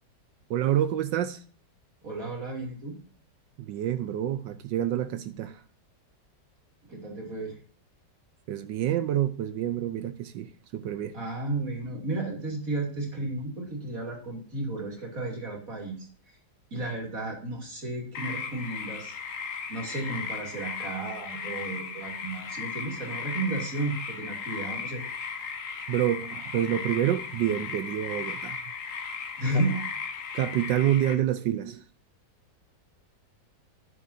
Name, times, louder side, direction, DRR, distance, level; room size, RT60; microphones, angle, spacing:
voice 1, 0.5-1.4 3.6-5.6 8.5-11.1 25.9-28.6 30.3-31.8, right 11 dB, 80° right, 1.3 m, -28 dB
voice 2, 2.0-3.0 6.9-7.6 11.1-16.1 16.7-19.1 19.7-25.0 29.4-29.8, right 2 dB, 50° right, 3.3 m, -33 dB
sound 1, 18.1-31.1, left 6 dB, 50° left, 1.3 m, -36 dB
11.0 x 9.5 x 2.7 m
omnidirectional pair, 1.9 m